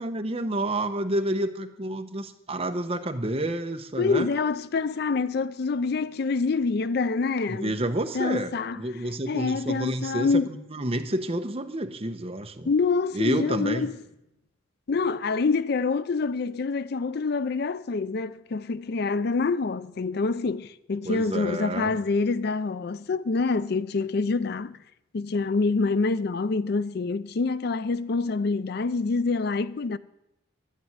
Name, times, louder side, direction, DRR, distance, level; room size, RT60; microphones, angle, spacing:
voice 1, 0.0-4.3 7.5-12.7 13.1-13.9 21.0-22.0, right 1 dB, 30° right, 1.0 m, -29 dB
voice 2, 4.0-7.7 8.1-8.8 9.3-10.5 12.7-13.9 14.9-24.8 25.1-30.0, left 4 dB, 55° left, 0.4 m, -26 dB
12.0 x 10.0 x 9.6 m
head